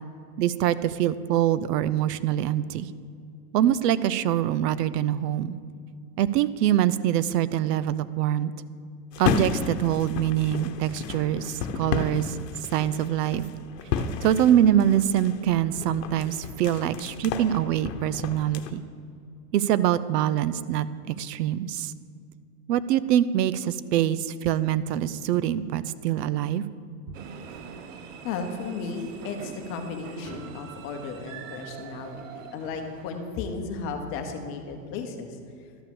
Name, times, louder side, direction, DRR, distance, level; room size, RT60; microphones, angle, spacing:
voice 1, 0.4-2.9 3.5-5.6 6.2-8.5 9.2-12.2 12.7-13.4 14.2-18.8 19.5-21.9 22.7-26.6, right 11 dB, 80° right, 16 dB, 0.6 m, -24 dB
sound 1, 9.1-18.7, left 6 dB, 85° left, 1.0 m, -32 dB
sound 2, 27.1-33.4, right 6 dB, 50° right, 0.9 m, -43 dB
voice 2, 28.2-35.4, left 4 dB, 25° left, 5 dB, 0.8 m, -34 dB
12.0 x 5.7 x 7.0 m, 2.4 s
supercardioid pair, 165°, 48 cm